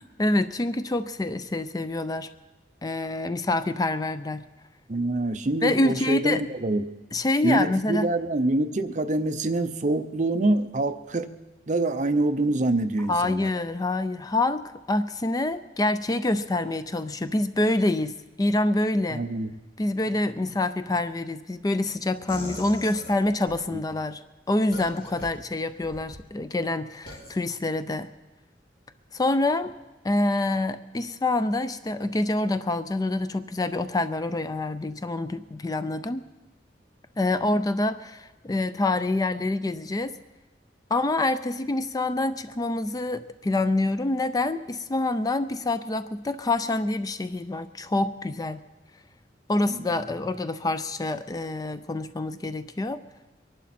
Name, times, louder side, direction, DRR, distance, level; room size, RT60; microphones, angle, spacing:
voice 1, 0.2-2.3 2.8-4.5 5.6-6.4 7.1-8.1 13.1-19.3 19.8-24.2 24.5-28.1 29.1-29.7 30.0-36.2 37.2-40.1 40.9-48.6 49.5-53.0, left 2 dB, 20° left, 12 dB, 0.4 m, -26 dB
voice 2, 4.9-6.8 7.4-11.3 11.7-13.5 19.1-19.5 49.6-49.9, right 2 dB, 45° right, 9 dB, 0.6 m, -25 dB
sound 1, 22.3-23.6 24.7-25.3 25.8-26.2 27.1-27.3, equal, 55° left, 3.5 m, -40 dB
23.0 x 11.5 x 4.2 m, 1.1 s
head